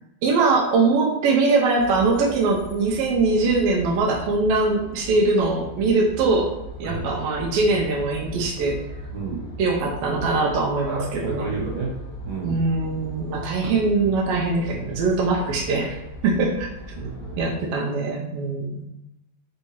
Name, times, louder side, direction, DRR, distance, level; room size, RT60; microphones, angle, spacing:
voice 1, 0.2-6.5 6.8-8.8 9.6-11.5 12.4-16.0 16.2-16.7 17.4-18.8, right 3 dB, 80° right, -1 dB, 1.4 m, -22 dB
sound 1, 1.8-17.4, equal, 90° left, 1.2 m, -38 dB
voice 2, 9.1-9.5 10.9-12.0 12.2-12.6 13.6-13.7 16.9-17.6, right 4 dB, 65° right, -4 dB, 2.1 m, -31 dB
4.5 x 2.7 x 2.8 m, 0.91 s
omnidirectional pair, 3.3 m